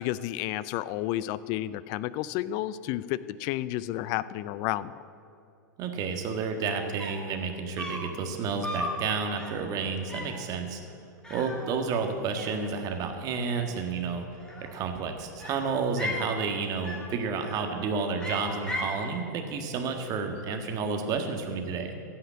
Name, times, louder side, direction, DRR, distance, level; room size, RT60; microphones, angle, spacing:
voice 1, 0.0-4.9, left 14 dB, 45° left, 17 dB, 0.5 m, -31 dB
voice 2, 5.8-10.8 11.3-14.4 14.7-21.9, right 5 dB, 40° right, 4 dB, 1.7 m, -31 dB
sound 1, 6.7-6.8 7.0-7.3 7.8-8.2 8.6-9.0 9.4-9.7 10.1-10.4 11.2-12.1 12.4-13.1 14.3-14.9 15.4-16.3 16.8-17.2 17.5-17.8 18.2-19.0, left 1 dB, 10° left, 2.1 m, -37 dB
15.5 x 5.8 x 8.7 m, 2.7 s
hypercardioid pair, 100°, 10 cm